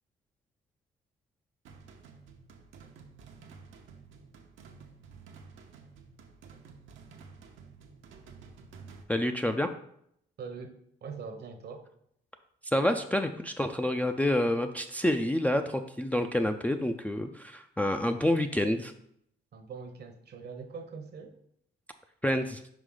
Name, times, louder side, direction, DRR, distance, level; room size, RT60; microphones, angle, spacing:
sound 1, 1.6-9.0, right 5 dB, 80° right, 0.8 m, -52 dB
voice 1, 9.1-9.7 12.6-18.9 22.2-22.6, left 1 dB, 5° left, 5 dB, 0.4 m, -28 dB
voice 2, 10.4-10.7 11.0-11.9 19.5-21.4, right 5 dB, 55° right, 7 dB, 0.9 m, -42 dB
5.2 x 4.9 x 3.8 m, 0.71 s
cardioid pair, 90°, 20 cm